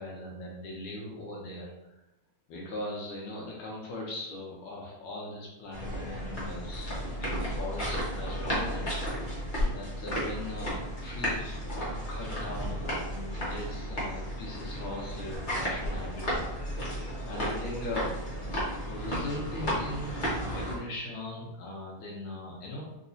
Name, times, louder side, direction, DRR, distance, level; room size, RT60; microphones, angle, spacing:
voice 1, 0.0-1.7 2.5-9.4 9.7-18.2 18.8-23.0, left 1 dB, 75° left, -3 dB, 1.4 m, -40 dB
sound 1, 5.7-20.8, equal, 35° left, 0.8 m, -33 dB
4.0 x 2.7 x 2.6 m, 0.92 s
omnidirectional pair, 2.4 m